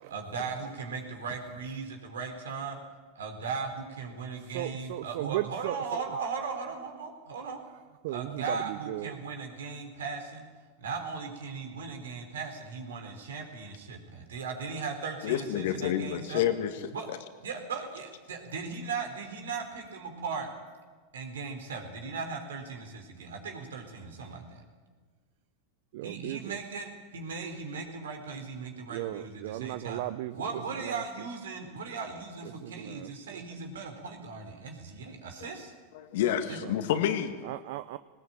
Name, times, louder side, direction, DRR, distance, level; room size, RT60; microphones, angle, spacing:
voice 1, 0.1-2.8 3.2-7.6 8.1-10.5 10.8-16.5 16.9-17.1 17.4-20.5 21.1-24.6 26.0-30.0 30.3-35.7 36.5-36.6, right 5 dB, 80° right, 5 dB, 4.0 m, -38 dB
voice 2, 4.5-6.0 8.0-9.1 25.9-26.6 28.9-30.4 30.8-31.0 32.6-33.4 36.6-36.7 37.4-38.0, right 16 dB, 65° right, 14 dB, 0.6 m, -36 dB
voice 3, 15.2-17.2 35.9-37.3, left 10 dB, 65° left, 8 dB, 2.1 m, -29 dB
19.0 x 19.0 x 9.0 m, 1.4 s
hypercardioid pair, 95°, 0 cm